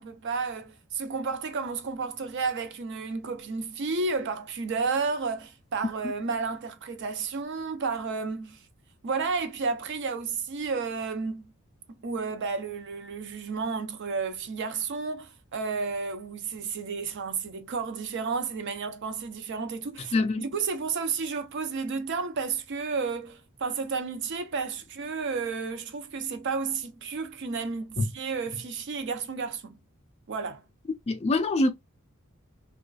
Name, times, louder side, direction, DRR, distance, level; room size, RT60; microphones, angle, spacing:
voice 1, 0.0-8.6 9.0-11.5 11.9-29.8 30.3-30.6, right 4 dB, 55° right, 0.5 m, -32 dB
voice 2, 20.1-20.4 28.0-28.1 31.1-31.7, left 2 dB, 30° left, 0.3 m, -24 dB
2.4 x 2.3 x 2.3 m
head